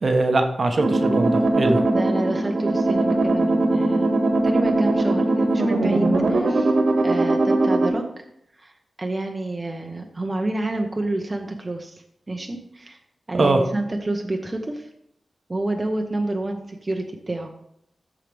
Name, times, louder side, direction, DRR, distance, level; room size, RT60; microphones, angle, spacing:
voice 1, 0.0-1.8 13.3-13.6, right 2 dB, 50° right, 5 dB, 1.0 m, -21 dB
sound 1, 0.8-7.9, right 2 dB, 75° right, 1.7 m, -20 dB
voice 2, 1.9-4.1 4.4-6.7 7.0-8.2 8.6-8.7 9.0-13.0 13.3-14.9 15.5-17.5, right 2 dB, 25° right, 3 dB, 0.9 m, -28 dB
13.5 x 4.9 x 3.4 m, 0.74 s
wide cardioid pair, 95°, 0 cm